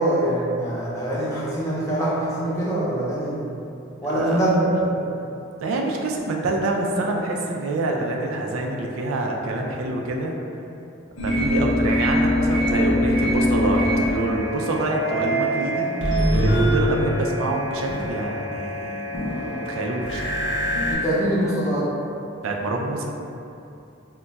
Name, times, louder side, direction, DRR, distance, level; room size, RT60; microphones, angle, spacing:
voice 1, 0.0-3.5 4.0-5.1 20.8-22.0, right 1 dB, 15° left, -8 dB, 0.5 m, -23 dB
voice 2, 4.1-4.4 5.6-10.3 11.2-15.9 16.3-19.1 19.7-20.2 22.4-23.1, right 2 dB, 90° right, 0 dB, 0.4 m, -26 dB
sound 1, 11.2-20.9, equal, 65° left, 0.6 m, -23 dB
2.2 x 2.1 x 3.9 m, 2.6 s
head